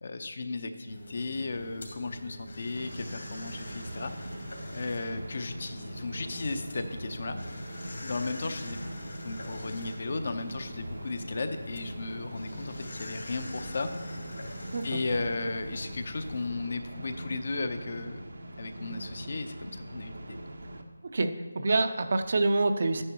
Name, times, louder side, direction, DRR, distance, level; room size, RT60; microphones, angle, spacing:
voice 1, 0.0-4.3 4.7-7.4 8.0-8.8 9.2-14.2 14.8-18.3 18.6-20.4, left 3 dB, 50° left, 8 dB, 0.8 m, -35 dB
sound 1, 0.9-16.5, left 1 dB, 65° left, 2.4 m, -44 dB
sound 2, 2.8-20.8, right 1 dB, 80° right, 1.1 m, -42 dB
voice 2, 21.0-23.0, right 3 dB, 50° right, 8 dB, 0.6 m, -26 dB
11.5 x 9.7 x 3.1 m, 1.3 s
figure-of-eight pair, 170°, 0 cm